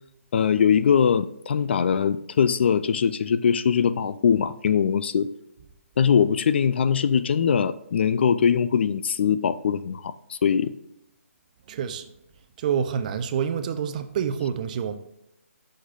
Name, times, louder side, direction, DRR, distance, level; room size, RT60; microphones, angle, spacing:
voice 1, 0.3-5.3 6.0-10.7, left 7 dB, 50° left, 0.3 m, -22 dB
voice 2, 11.7-12.0 12.6-14.9, right 8 dB, 30° right, 0.5 m, -27 dB
9.5 x 6.4 x 2.4 m
hypercardioid pair, 155°, 8 cm